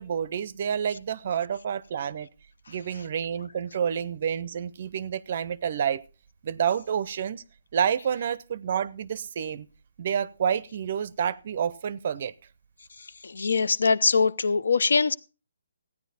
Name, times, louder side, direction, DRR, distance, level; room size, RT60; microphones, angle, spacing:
voice 1, 0.0-2.3 2.7-6.0 6.4-7.4 7.7-9.7 10.0-12.3, right 8 dB, 35° right, 0.5 m, -29 dB
voice 2, 13.2-15.1, left 4 dB, 75° left, 0.6 m, -22 dB
15.0 x 9.8 x 4.1 m
hypercardioid pair, 175°, 0 cm